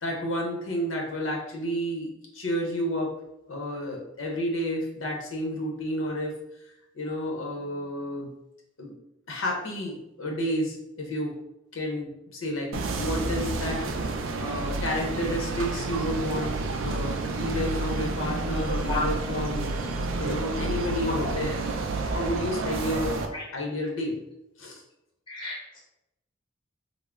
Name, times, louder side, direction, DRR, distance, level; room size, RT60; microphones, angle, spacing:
voice 1, 0.0-3.1 3.5-6.3 6.9-8.3 8.8-8.9 9.3-11.3 11.7-16.6 16.8-19.9 20.2-21.6 22.1-23.2 23.5-24.2 24.6-24.8, equal, 80° left, 0 dB, 0.8 m, -31 dB
sound 1, 12.7-23.3, right 3 dB, 70° right, 0.4 m, -30 dB
voice 2, 25.3-25.8, left 3 dB, 25° left, -3 dB, 0.7 m, -32 dB
3.5 x 2.0 x 3.5 m, 0.84 s
head